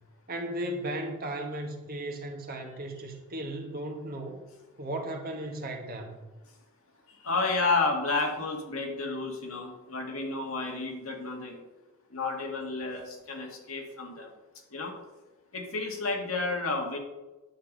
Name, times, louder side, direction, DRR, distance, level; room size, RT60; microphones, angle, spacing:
voice 1, 0.3-4.4 4.8-6.1, right 1 dB, 45° right, 1.5 m, -36 dB
voice 2, 7.2-11.6 12.1-14.3 14.7-14.9 15.5-17.0, left 3 dB, 70° left, 2.0 m, -31 dB
9.3 x 6.9 x 5.3 m
head